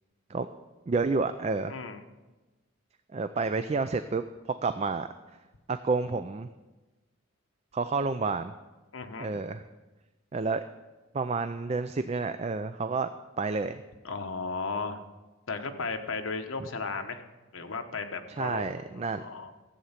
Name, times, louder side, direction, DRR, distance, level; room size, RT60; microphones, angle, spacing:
voice 1, 0.9-1.7 3.1-5.4 5.7-6.5 7.7-8.5 9.2-9.6 10.3-10.6 11.1-13.1 13.4-13.8 18.3-19.2, right 4 dB, 30° right, 10 dB, 0.3 m, -30 dB
voice 2, 1.7-2.0 8.9-9.3 14.0-15.0 15.5-17.2 17.5-18.6 19.0-19.5, left 4 dB, 75° left, 6 dB, 1.0 m, -35 dB
14.5 x 8.0 x 5.8 m, 1.1 s
head